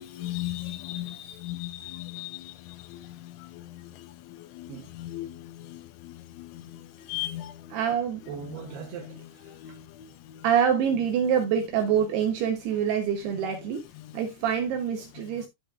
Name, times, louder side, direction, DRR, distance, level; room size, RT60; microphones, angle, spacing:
voice 1, 0.0-2.4 2.9-3.0 4.6-5.3 5.7-5.8 6.4-6.5 7.1-7.5 9.6-9.7, left 15 dB, 90° left, 3.5 m, -35 dB
voice 2, 7.7-9.2 10.4-13.9 14.1-15.5, right 8 dB, 75° right, 2.4 m, -26 dB
12.5 x 4.9 x 2.4 m
omnidirectional pair, 5.8 m